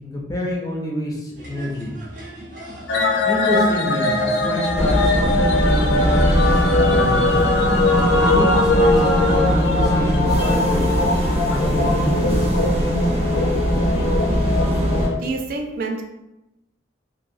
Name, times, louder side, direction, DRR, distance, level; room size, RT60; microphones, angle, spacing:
voice 1, 0.0-1.9 3.2-7.4 8.1-11.0 11.5-12.6, left 1 dB, 20° left, -2 dB, 0.5 m, -27 dB
sound 1, 1.3-7.4, equal, 70° right, 0.8 m, -36 dB
sound 2, 2.9-15.2, left 2 dB, 80° left, 0.4 m, -21 dB
sound 3, 4.7-15.1, equal, 35° right, 0.7 m, -21 dB
voice 2, 15.2-16.0, right 3 dB, 55° right, 3 dB, 0.3 m, -27 dB
2.8 x 2.7 x 2.6 m, 0.92 s
head